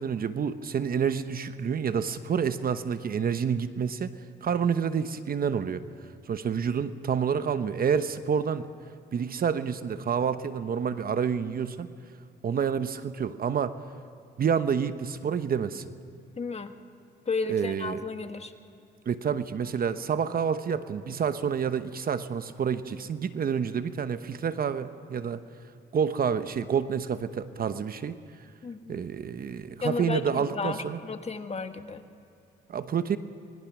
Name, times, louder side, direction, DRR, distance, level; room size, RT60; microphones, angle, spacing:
voice 1, 0.0-4.1 4.4-5.8 6.3-8.7 9.1-11.9 12.4-13.8 14.4-15.9 17.5-18.0 19.1-25.4 25.9-28.2 28.9-31.0 32.7-33.2, right 7 dB, 50° right, 11 dB, 1.0 m, -28 dB
voice 2, 16.4-16.7 17.2-18.5 28.6-29.0 29.8-32.0, left 4 dB, 30° left, 7 dB, 1.5 m, -33 dB
25.5 x 21.0 x 6.2 m, 2.6 s
cardioid pair, 90°, 20 cm